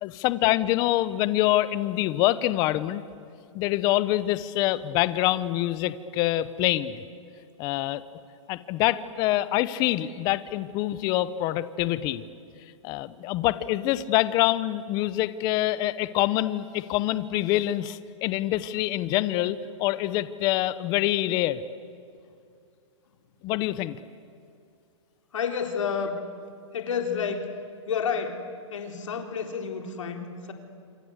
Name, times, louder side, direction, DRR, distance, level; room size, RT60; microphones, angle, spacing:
voice 1, 0.0-3.0 3.5-7.0 7.6-8.0 8.5-12.2 12.8-21.6 23.4-24.0, left 15 dB, 25° left, 15 dB, 0.9 m, -25 dB
voice 2, 25.3-26.2 26.7-27.5 27.9-30.5, left 6 dB, 75° left, 4 dB, 3.9 m, -30 dB
27.0 x 27.0 x 8.2 m, 2.4 s
hypercardioid pair, 160°, 16 cm